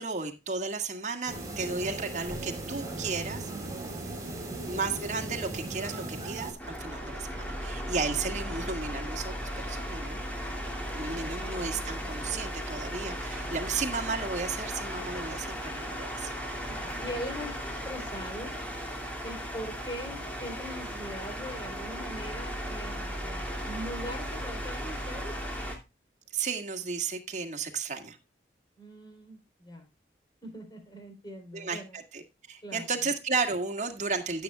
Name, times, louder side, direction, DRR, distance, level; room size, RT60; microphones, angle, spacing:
voice 1, 0.0-3.5 4.7-10.2 10.9-16.3 26.3-28.2 31.5-32.2 32.5-34.4, right 4 dB, 40° right, 4 dB, 1.9 m, -34 dB
sound 1, 1.3-6.5, right 2 dB, 20° right, 4.4 m, -37 dB
voice 2, 3.5-3.9 11.2-11.5 16.7-17.6 17.8-18.5 19.2-25.3 28.8-29.9 30.4-32.0 32.6-32.9, equal, 25° left, 3 dB, 3.8 m, -41 dB
sound 2, 6.6-25.8, equal, 10° left, 2.7 m, -36 dB
16.0 x 8.0 x 2.3 m, 0.26 s
head